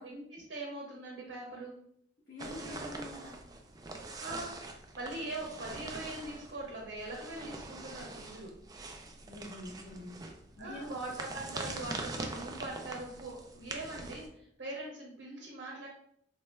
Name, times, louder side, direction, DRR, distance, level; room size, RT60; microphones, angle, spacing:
voice 1, 0.0-1.8 4.2-4.5 4.9-8.5 10.6-15.9, right 2 dB, 75° right, -2 dB, 0.7 m, -42 dB
voice 2, 2.3-3.4 9.3-10.2 10.6-11.0, left 1 dB, 55° left, -9 dB, 1.0 m, -45 dB
sound 1, 2.4-14.3, right 2 dB, 20° right, 0.3 m, -44 dB
3.1 x 2.0 x 3.3 m, 0.69 s
head